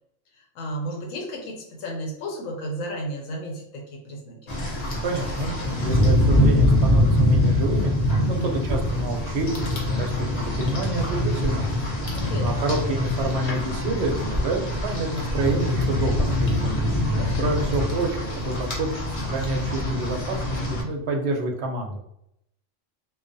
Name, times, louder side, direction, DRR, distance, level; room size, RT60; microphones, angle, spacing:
voice 1, 0.3-4.5 8.2-8.5 12.1-12.6 17.1-17.5, equal, 85° left, 0 dB, 1.0 m, -34 dB
Rain, 4.5-20.8, left 1 dB, 45° left, 0.6 m, -24 dB
voice 2, 5.0-7.9 8.3-11.7 12.3-16.7 17.4-22.0, right 2 dB, 65° right, 2 dB, 0.7 m, -28 dB
2.3 x 2.3 x 2.5 m, 0.78 s
omnidirectional pair, 1.3 m